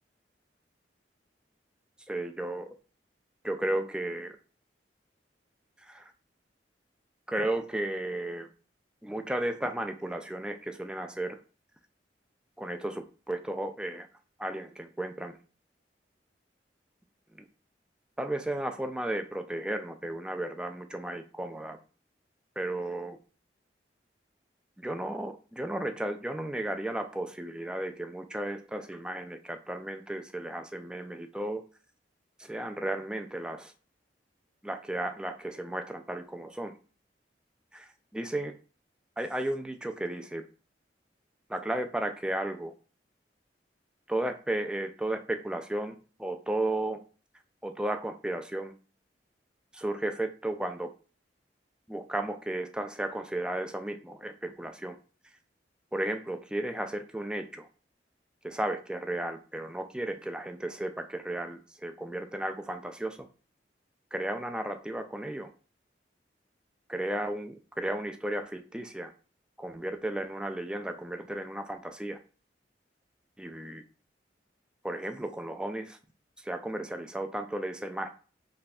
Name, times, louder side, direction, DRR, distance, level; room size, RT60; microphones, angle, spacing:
voice 1, 2.1-2.7 3.4-4.4 5.8-6.1 7.3-8.5 9.0-11.4 12.6-14.1 14.4-15.4 17.4-17.5 18.2-21.8 22.6-23.2 24.8-31.6 32.4-33.7 34.6-36.7 37.7-38.5 39.2-40.4 41.5-42.7 44.1-47.0 47.6-48.7 49.7-50.9 51.9-55.0 55.9-57.7 58.4-63.3 64.1-65.5 66.9-69.1 69.6-72.2 73.4-73.8 74.8-76.0 76.4-78.1, right 1 dB, 5° right, 6 dB, 0.3 m, -34 dB
3.3 x 2.3 x 4.1 m, 0.38 s
head